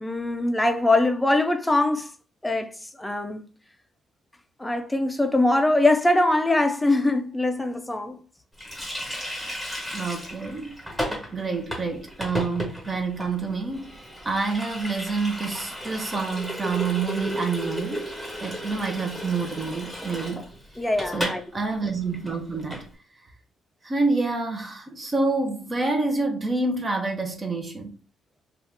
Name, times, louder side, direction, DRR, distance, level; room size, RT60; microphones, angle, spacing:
voice 1, 0.0-2.1 2.4-2.7 3.0-3.4 4.6-8.2 20.8-21.4, left 2 dB, 10° left, 0.4 m, -22 dB
Water tap faucet, 8.6-21.4 21.7-21.8 22.1-22.9, equal, 5° right, 1.3 m, -34 dB
voice 2, 9.9-10.7 11.3-13.9 14.2-18.1 18.4-20.5 21.1-22.9 23.8-27.9, right 3 dB, 30° right, 0.6 m, -28 dB
2.7 x 2.4 x 3.4 m
cardioid pair, 90°, 0 cm